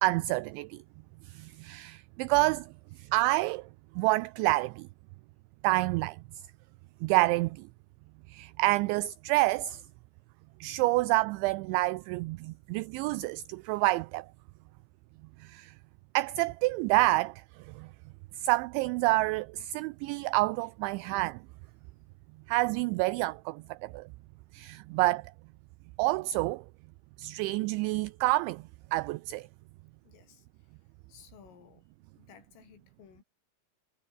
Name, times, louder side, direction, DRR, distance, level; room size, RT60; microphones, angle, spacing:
voice 1, 0.0-0.8 1.2-2.7 3.0-3.7 4.0-4.9 5.6-6.2 7.0-7.7 8.3-9.8 10.6-14.3 15.4-15.7 16.1-17.9 18.4-21.4 22.5-24.1 24.5-25.3 26.0-26.6 27.2-28.6 28.9-29.5, right 20 dB, 80° right, 2.8 m, -28 dB
voice 2, 30.0-30.8 31.1-31.9 32.1-33.2, left 8 dB, 90° left, 6.6 m, -57 dB
omnidirectional pair, 5.7 m